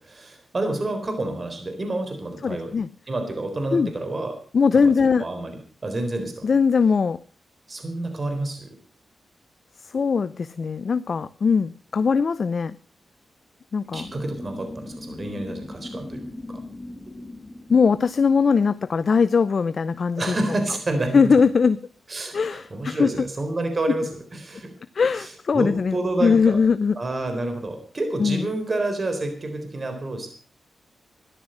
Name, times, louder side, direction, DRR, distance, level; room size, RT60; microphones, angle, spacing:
voice 1, 0.0-2.7 3.1-4.4 4.7-4.8 5.2-5.6 5.8-6.5 7.7-8.7 13.9-16.6 20.2-21.3 22.1-24.7 25.1-26.6 27.0-30.3, right 2 dB, 45° right, 7 dB, 3.9 m, -29 dB
voice 2, 2.4-2.9 3.7-3.9 4.5-5.2 6.4-7.2 9.8-12.7 13.7-14.1 17.7-20.4 21.1-21.8 22.3-23.1 24.9-27.0 28.2-28.5, left 5 dB, 60° left, 14 dB, 0.6 m, -20 dB
sound 1, 13.9-18.9, left 2 dB, 25° left, 1.6 m, -39 dB
13.5 x 11.5 x 6.4 m, 0.41 s
supercardioid pair, 45°, 0 cm